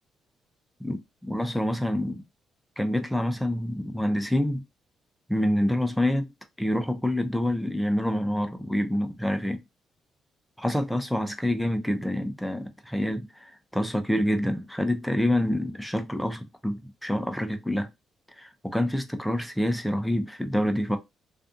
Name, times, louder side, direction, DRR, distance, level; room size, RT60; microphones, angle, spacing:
voice 1, 1.3-2.2 2.8-4.6 5.3-6.3 6.6-9.6 10.6-17.9 18.4-21.0, left 1 dB, ahead, 0.5 m, -27 dB
2.6 x 2.4 x 2.4 m
cardioid pair, 90°, 0 cm